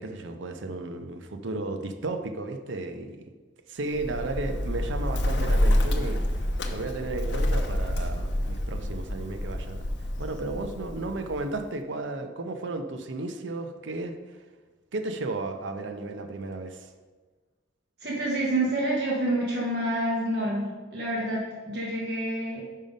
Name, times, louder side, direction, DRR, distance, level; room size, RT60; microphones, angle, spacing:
voice 1, 0.0-3.3 3.7-6.2 6.7-9.8 10.2-14.2 14.9-16.9, right 2 dB, 85° right, 7 dB, 0.6 m, -34 dB
Bird, 3.9-11.6, left 1 dB, 70° left, 0.7 m, -28 dB
voice 2, 18.0-22.6, right 1 dB, 60° right, -4 dB, 1.2 m, -28 dB
5.5 x 5.1 x 5.3 m, 1.4 s
head